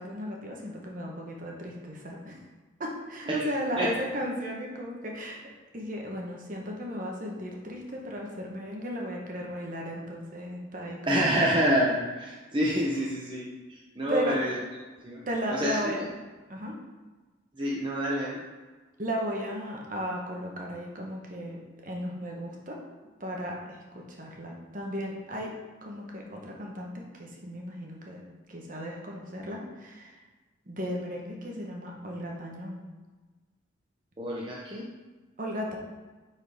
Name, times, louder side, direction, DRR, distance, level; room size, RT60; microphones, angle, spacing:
voice 1, 0.0-2.4 2.8-5.4 5.7-11.5 14.1-14.6 15.3-16.0 16.5-16.8 19.0-22.8 23.2-25.5 25.8-28.2 28.5-30.2 30.7-32.8 35.4-35.8, equal, 40° right, -1 dB, 1.1 m, -35 dB
voice 2, 11.1-14.6 15.0-15.2 15.5-16.1 17.6-18.4 34.2-34.9, equal, 25° right, -4 dB, 0.7 m, -28 dB
9.0 x 4.2 x 3.5 m, 1.3 s
head